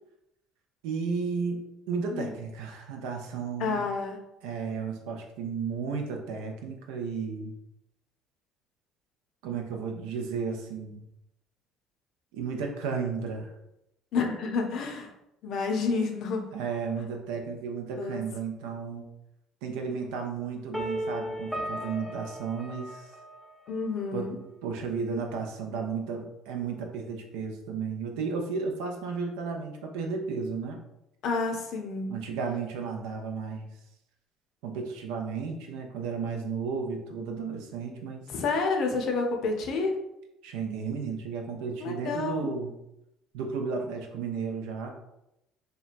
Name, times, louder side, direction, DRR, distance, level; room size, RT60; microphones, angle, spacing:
voice 1, 0.8-3.8 4.4-7.5 9.4-11.0 12.3-13.5 16.5-19.1 19.6-23.1 24.1-24.3 24.6-30.8 32.1-33.7 34.6-38.2 40.4-42.8 43.3-44.9, right 5 dB, 75° right, 3 dB, 0.4 m, -33 dB
voice 2, 3.6-4.2 14.1-15.1 15.4-16.5 18.0-18.2 23.7-24.4 31.2-32.2 38.3-40.0 41.8-42.5, left 4 dB, 60° left, 3 dB, 0.5 m, -29 dB
sound 1, 20.7-23.7, equal, 5° left, 0.6 m, -35 dB
2.8 x 2.3 x 2.5 m, 0.86 s
hypercardioid pair, 60°, 0 cm